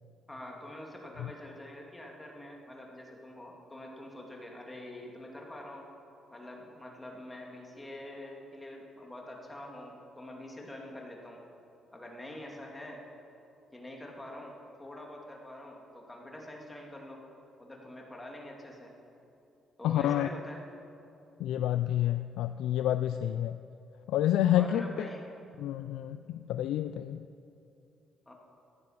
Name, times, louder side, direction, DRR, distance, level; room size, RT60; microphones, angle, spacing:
voice 1, 0.3-5.9 6.3-11.4 11.9-13.0 13.7-17.2 17.6-18.9 19.8-20.6 24.5-25.3 28.3-28.4, left 1 dB, 15° left, 0 dB, 2.4 m, -45 dB
voice 2, 19.8-20.3 21.4-23.6 24.1-25.1 25.6-27.2, left 12 dB, 85° left, 10 dB, 0.3 m, -29 dB
15.0 x 9.7 x 5.8 m, 2.7 s
cardioid pair, 90°, 0 cm